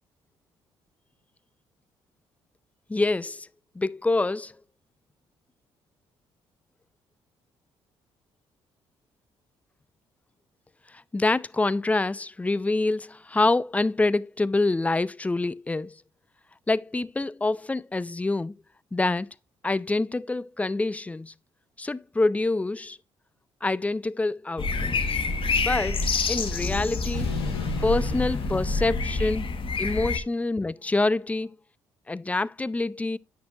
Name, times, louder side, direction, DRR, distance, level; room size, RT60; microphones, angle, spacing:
voice 1, 2.9-3.5 3.8-4.5 11.1-15.9 16.7-18.5 18.9-19.3 19.6-21.3 21.8-23.0 23.6-25.0 25.5-27.3 27.8-29.4 29.8-31.5 32.1-33.2, left 2 dB, 10° left, 0.4 m, -26 dB
sound 1, 24.6-30.2, left 4 dB, 45° left, 1.2 m, -28 dB
sound 2, 25.6-29.9, left 3 dB, 90° left, 1.7 m, -35 dB
9.4 x 6.4 x 2.4 m
hypercardioid pair, 45°, 13 cm